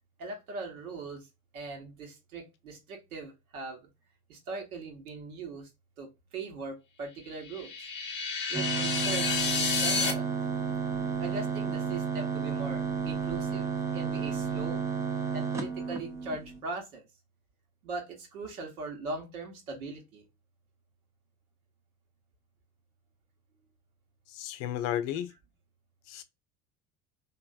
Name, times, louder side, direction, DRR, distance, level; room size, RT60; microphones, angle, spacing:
voice 1, 0.2-1.2 1.5-3.8 4.3-5.7 6.0-6.1 6.3-7.7 8.5-10.4 11.2-14.9 15.3-17.0 17.8-20.2, right 3 dB, 70° right, 1.2 m, -40 dB
sound 1, 7.3-10.1, left 5 dB, 25° left, 0.8 m, -30 dB
sound 2, 8.5-16.6, right 6 dB, 10° right, 0.3 m, -32 dB
voice 2, 24.3-25.3 26.1-26.2, left 11 dB, 50° left, 0.6 m, -33 dB
3.0 x 2.6 x 2.4 m
figure-of-eight pair, 65°, 46 cm